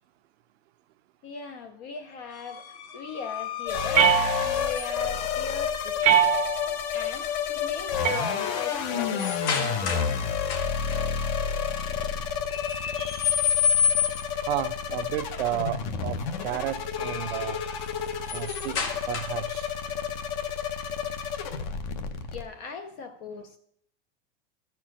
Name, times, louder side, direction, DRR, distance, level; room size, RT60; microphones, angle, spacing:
voice 1, 1.2-6.3 6.9-10.4 18.1-18.2 22.3-23.6, left 5 dB, 25° left, 0.4 m, -39 dB
sound 1, 2.3-5.2 7.0-7.3 7.7-10.2 10.4-11.0 12.5-14.4 16.7-19.6, left 7 dB, 75° left, 2.2 m, -30 dB
sound 2, 3.7-22.4, left 7 dB, 40° left, 0.8 m, -30 dB
sound 3, 3.9-4.8 6.0-6.8 8.0-8.8, right 8 dB, 20° right, 0.6 m, -23 dB
voice 2, 14.4-17.6 18.3-18.8 19.1-19.7, right 13 dB, 60° right, 0.6 m, -32 dB
13.0 x 4.4 x 6.2 m
supercardioid pair, 170°, 35 cm